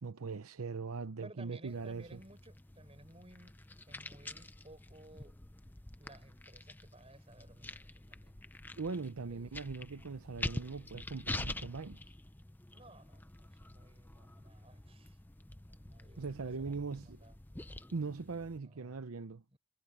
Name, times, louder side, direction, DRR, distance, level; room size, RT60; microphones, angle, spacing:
voice 1, 0.0-2.2 8.8-12.0 16.2-17.2 17.9-19.4, right 4 dB, 80° right, 0.7 m, -40 dB
voice 2, 1.2-3.5 3.9-5.4 6.0-8.4 9.3-9.5 12.7-15.2 15.6-17.4 18.6-19.1 19.5-19.6, right 1 dB, 25° right, 5.7 m, -58 dB
sound 1, 1.7-18.6, left 2 dB, 10° left, 0.5 m, -47 dB
head